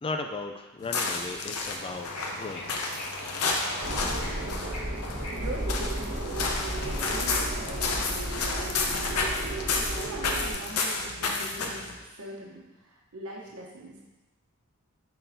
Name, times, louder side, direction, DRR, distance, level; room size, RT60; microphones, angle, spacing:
voice 1, 0.0-2.7, left 3 dB, 25° left, 4 dB, 0.4 m, -36 dB
sound 1, 0.8-12.0, left 3 dB, 90° left, 0.8 m, -31 dB
Bird / Ocean, 1.8-8.2, left 1 dB, 75° left, 1.6 m, -40 dB
sound 2, 3.8-10.5, right 1 dB, 45° right, 1.3 m, -33 dB
voice 2, 4.4-14.0, right 1 dB, 75° right, -2 dB, 1.0 m, -42 dB
10.0 x 3.8 x 2.7 m, 1.1 s
head